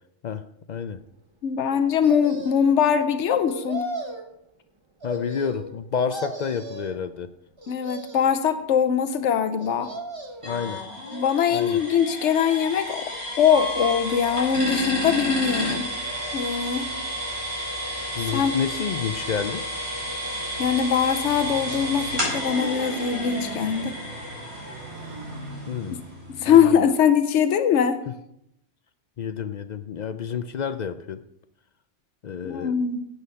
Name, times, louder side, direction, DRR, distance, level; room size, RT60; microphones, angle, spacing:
voice 1, 0.2-1.0 5.0-7.3 10.4-10.8 11.5-11.8 18.2-19.7 25.7-26.0 26.4-26.8 28.1-28.2 29.2-31.2 32.2-32.8, left 6 dB, 55° left, 12 dB, 0.5 m, -29 dB
voice 2, 1.4-3.8 7.7-9.9 11.1-13.1 13.4-15.9 16.3-16.9 18.2-18.5 20.6-24.0 26.3-28.0 32.4-33.1, left 8 dB, 85° left, 10 dB, 1.0 m, -22 dB
sound 1, 2.0-2.8 3.5-4.3 5.0-5.8 6.1-7.0 7.6-8.4 9.6-10.5 11.0-11.7 12.4-13.2 14.2-15.0 15.7-16.7 17.0-17.1, right 1 dB, 25° right, 1.0 m, -38 dB
sound 2, 10.4-26.1, equal, 60° right, 4.9 m, -31 dB
Motorcycle, 14.4-26.6, right 3 dB, 75° right, 1.3 m, -43 dB
9.7 x 8.2 x 5.6 m, 0.78 s
omnidirectional pair, 1.2 m